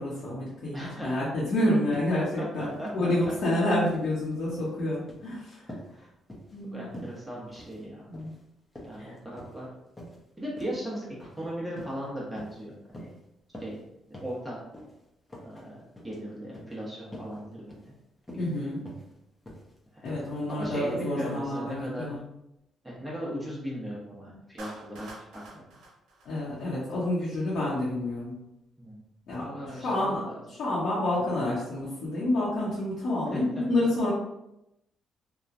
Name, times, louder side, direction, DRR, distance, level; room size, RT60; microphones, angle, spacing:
voice 1, 0.0-5.7 6.5-6.9 8.1-8.3 9.0-9.1 18.4-18.8 20.0-22.2 26.2-28.3 29.3-29.4 29.7-30.2 30.5-34.1, left 1 dB, 70° left, -8 dB, 0.9 m, -28 dB
voice 2, 0.7-1.2 2.4-3.1 5.9-6.1 6.7-8.1 8.8-9.7 10.4-13.1 13.6-13.8 14.2-14.6 15.4-17.7 19.9-20.1 20.5-22.1 22.8-25.1 25.3-25.6 28.8-29.0 29.4-30.4 33.3-33.6, equal, 10° right, -6 dB, 1.0 m, -38 dB
sound 1, 1.9-2.2 2.5-2.9 3.2-4.1 4.3-4.7 5.0-5.3 5.7-5.9 6.3-6.6 6.9-7.2 7.5-7.8 8.1-8.4 8.7-9.6 10.0-10.2 10.6-10.8 11.2-11.4 11.7-12.0 12.3-12.6 12.9-13.2 13.5-13.8 14.1-14.4 14.7-14.9 15.3-15.6 16.0-16.2 16.5-16.7 17.1-17.4 17.7-17.9 18.2-18.6 18.8-19.1 19.5-19.7 20.0-20.3 20.6-20.9 21.2-21.4, equal, 20° left, 0.8 m, -45 dB
Clapping, 24.6-27.0, right 2 dB, 80° right, 0.8 m, -47 dB
2.9 x 2.3 x 2.5 m, 0.85 s
cardioid pair, 90°, 0 cm